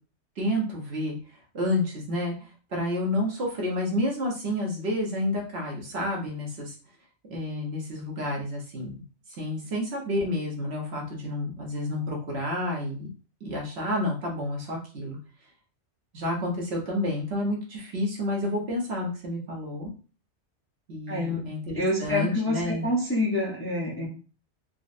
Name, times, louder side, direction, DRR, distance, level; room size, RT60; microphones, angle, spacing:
voice 1, 0.4-1.2 1.5-6.7 7.3-9.0 9.4-13.1 13.4-15.2 16.1-19.9 20.9-22.9, left 1 dB, 65° right, -1 dB, 1.2 m, -30 dB
voice 2, 21.1-21.5 21.8-24.1, left 1 dB, 15° left, -4 dB, 0.6 m, -27 dB
3.9 x 2.2 x 2.5 m, 0.36 s
omnidirectional pair, 1.2 m